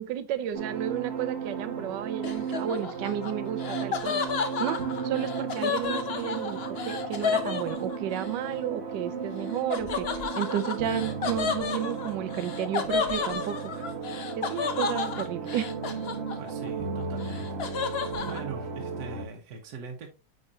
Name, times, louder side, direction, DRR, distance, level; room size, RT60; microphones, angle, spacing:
voice 1, 0.0-4.2 4.6-4.8 5.0-10.1 10.4-13.7 14.4-15.7, right 10 dB, 90° right, 1.3 m, -32 dB
sound 1, 0.5-19.2, right 5 dB, 40° right, 1.2 m, -35 dB
Laughter, 2.2-8.3 9.7-16.7 17.0-18.4, left 6 dB, 50° left, 0.8 m, -32 dB
voice 2, 16.4-20.1, right 4 dB, 65° right, 1.4 m, -42 dB
8.9 x 4.5 x 2.7 m
omnidirectional pair, 1.9 m